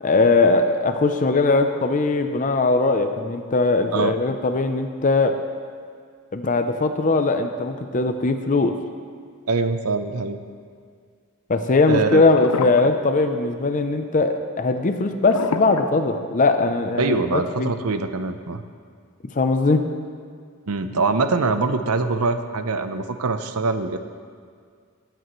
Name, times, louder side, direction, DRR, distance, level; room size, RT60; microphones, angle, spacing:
voice 1, 0.0-5.4 6.3-8.8 11.5-17.7 19.4-19.8, left 3 dB, 35° left, 7 dB, 0.5 m, -20 dB
voice 2, 9.5-10.4 11.9-12.2 17.0-18.6 20.7-24.0, right 4 dB, 85° right, 9 dB, 0.7 m, -23 dB
sound 1, 12.3-13.0 13.2-13.5 15.2-16.6, left 6 dB, 90° left, 0.5 m, -28 dB
20.0 x 9.0 x 3.1 m, 2.1 s
head